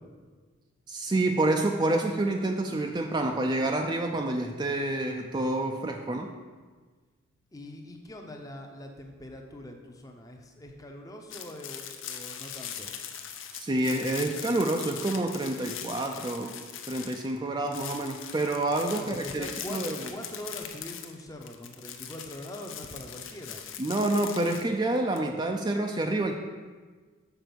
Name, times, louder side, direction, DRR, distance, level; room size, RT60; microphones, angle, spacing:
voice 1, 0.9-6.3 13.5-16.6 16.9-20.1 23.8-26.4, right 2 dB, 20° right, 3 dB, 0.4 m, -28 dB
voice 2, 7.5-12.9 18.9-23.7, left 1 dB, 15° left, 2 dB, 0.6 m, -43 dB
sound 1, 11.3-17.4 17.6-25.2, left 8 dB, 70° left, 0.6 m, -41 dB
6.8 x 4.5 x 6.0 m, 1.4 s
head